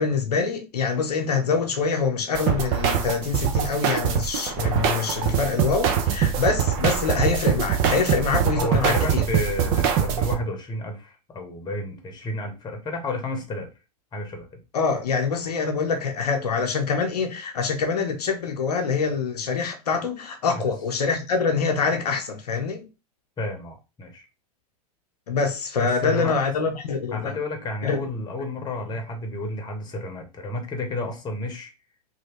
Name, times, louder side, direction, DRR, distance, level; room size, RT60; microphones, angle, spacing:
voice 1, 0.0-9.2 14.7-22.8 25.3-27.3 27.8-28.0, left 5 dB, 80° left, 0.7 m, -25 dB
sound 1, 2.4-10.3, right 8 dB, 45° right, 0.7 m, -23 dB
voice 2, 8.5-13.7 14.1-14.6 20.5-20.7 23.4-24.3 25.8-26.3 27.1-31.7, left 2 dB, 20° left, 1.0 m, -31 dB
3.1 x 2.7 x 3.0 m
hypercardioid pair, 95°, 20 cm